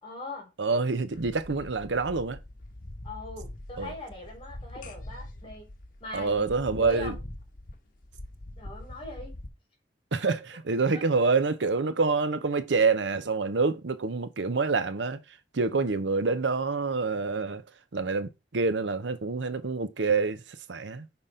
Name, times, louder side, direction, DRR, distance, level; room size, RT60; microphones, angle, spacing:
voice 1, 0.0-0.5 3.0-5.7 6.0-7.2 8.6-9.3 10.2-10.3 10.9-11.0, left 2 dB, 30° left, 3.3 m, -41 dB
voice 2, 0.6-2.4 3.8-3.9 6.1-7.2 10.1-10.4 10.7-15.2 15.5-17.6 17.9-20.4 20.7-21.1, right 4 dB, 90° right, 0.7 m, -27 dB
sound 1, 1.1-9.5, left 1 dB, 50° left, 1.2 m, -43 dB
5.7 x 4.0 x 5.0 m
head